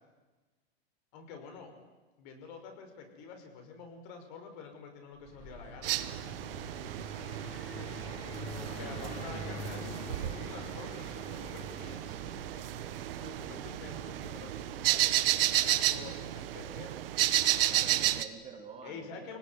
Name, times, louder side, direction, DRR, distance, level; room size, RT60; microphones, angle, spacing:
voice 1, 1.1-1.7 2.2-6.3 8.7-12.1 13.2-17.1 18.8-19.4, left 5 dB, 45° left, 5 dB, 5.7 m, -48 dB
Car passing by, 5.2-15.8, left 1 dB, 20° left, 5.6 m, -46 dB
sound 1, 5.8-18.2, right 13 dB, 60° right, 1.4 m, -32 dB
voice 2, 8.8-9.2 17.7-19.4, right 6 dB, 20° right, 2 dB, 2.8 m, -48 dB
26.0 x 18.0 x 9.5 m, 1.2 s
supercardioid pair, 150°, 32 cm